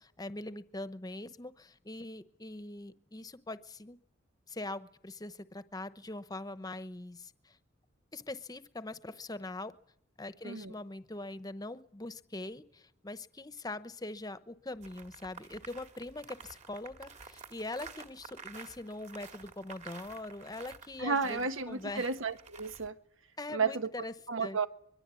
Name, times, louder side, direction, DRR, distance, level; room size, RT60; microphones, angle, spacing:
voice 1, 0.0-4.0 4.5-7.6 8.1-9.7 10.2-22.1 23.4-24.1 24.4-24.6, left 2 dB, 20° left, 0.9 m, -42 dB
sound 1, 14.8-22.9, right 5 dB, 35° right, 2.0 m, -51 dB
voice 2, 21.0-23.0 23.5-23.9 24.3-24.7, right 5 dB, 85° right, 1.3 m, -32 dB
24.0 x 22.5 x 8.4 m
head